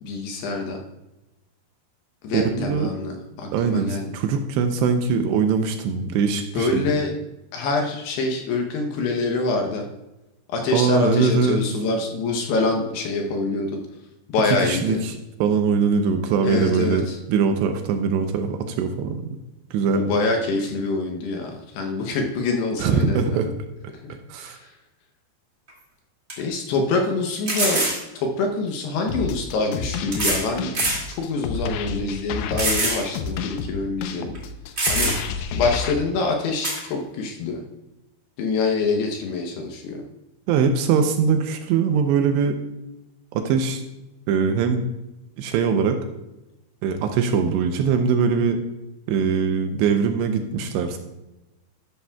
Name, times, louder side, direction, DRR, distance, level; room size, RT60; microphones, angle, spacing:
voice 1, 0.0-0.8 2.2-4.2 6.5-7.1 7.5-9.8 10.5-13.8 14.3-15.0 16.4-17.2 19.9-23.5 24.0-24.7 26.4-27.9 28.1-30.7 31.1-34.4 34.9-35.1 35.5-37.6 38.4-40.0, left 3 dB, 75° left, 2 dB, 2.7 m, -25 dB
voice 2, 2.3-2.9 3.5-6.9 10.7-11.6 14.6-19.3 19.7-20.2 22.8-23.5 24.3-24.6 40.5-42.6 43.3-43.8 44.3-44.8 45.4-46.0 46.8-48.6 49.1-51.0, right 6 dB, 80° right, 6 dB, 2.7 m, -22 dB
sound 1, 25.7-25.8 26.3-26.4 27.5-28.0 29.1-29.2 30.1-30.5 30.7-31.0 31.5-31.6 32.6-33.0 33.4-33.5 34.3-34.4 34.8-35.4 36.6-36.8, right 2 dB, 30° right, 1.5 m, -23 dB
sound 2, 29.1-35.9, left 5 dB, 90° left, 3.2 m, -30 dB
13.0 x 11.0 x 2.3 m, 0.98 s
omnidirectional pair, 5.4 m